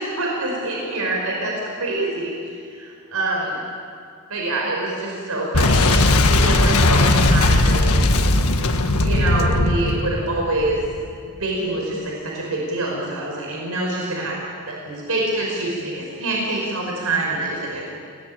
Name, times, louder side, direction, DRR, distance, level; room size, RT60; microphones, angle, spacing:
voice 1, 0.0-2.3 2.7-3.6 4.3-8.0 9.0-10.8 11.4-14.4 14.7-17.8, right 2 dB, 75° right, -2 dB, 5.5 m, -25 dB
Boom, 5.5-11.1, left 2 dB, 80° left, 1.6 m, -18 dB
29.0 x 18.5 x 8.8 m, 2.3 s
head